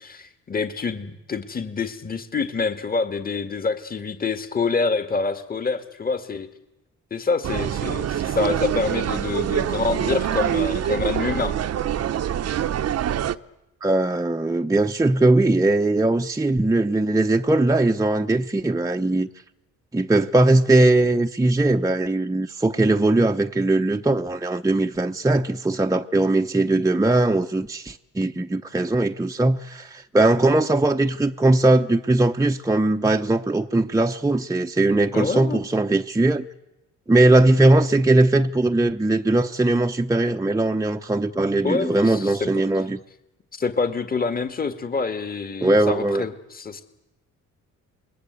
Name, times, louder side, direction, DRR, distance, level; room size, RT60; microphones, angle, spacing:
voice 1, 0.0-6.5 7.1-11.5 35.1-35.6 41.6-42.5 43.5-46.8, left 4 dB, 30° left, 2.1 m, -26 dB
sound 1, 7.4-13.3, right 10 dB, 55° right, 0.9 m, -25 dB
voice 2, 13.8-19.3 19.9-36.5 37.1-43.0 45.6-46.2, right 2 dB, 10° right, 0.8 m, -20 dB
28.0 x 21.0 x 8.3 m
cardioid pair, 90°, 30 cm